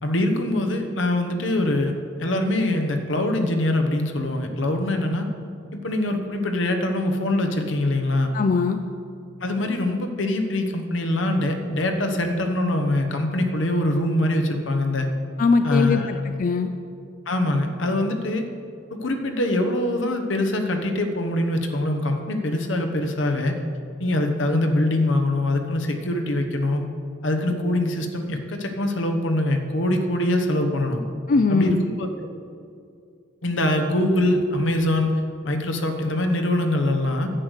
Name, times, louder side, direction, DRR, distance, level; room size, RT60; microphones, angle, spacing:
voice 1, 0.0-5.3 5.7-8.3 9.4-15.1 15.6-16.1 17.3-18.4 18.9-23.6 24.0-26.8 27.2-31.0 31.5-32.1 33.4-35.2 35.4-37.3, left 1 dB, 80° left, 4 dB, 1.2 m, -23 dB
voice 2, 8.3-8.8 15.4-16.7 31.3-31.8, left 4 dB, 45° left, 8 dB, 0.4 m, -20 dB
10.5 x 8.1 x 6.4 m, 2.4 s
head